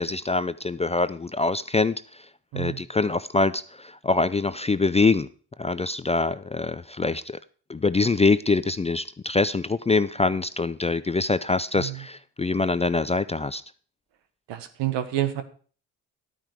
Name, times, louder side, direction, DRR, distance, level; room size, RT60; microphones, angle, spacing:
voice 1, 0.0-2.2 2.5-5.3 5.6-7.4 7.7-13.6, left 3 dB, 15° left, 14 dB, 0.4 m, -24 dB
voice 2, 14.5-15.4, right 13 dB, 75° right, 10 dB, 1.4 m, -28 dB
12.0 x 8.9 x 4.7 m, 0.42 s
hypercardioid pair, 55°, 44 cm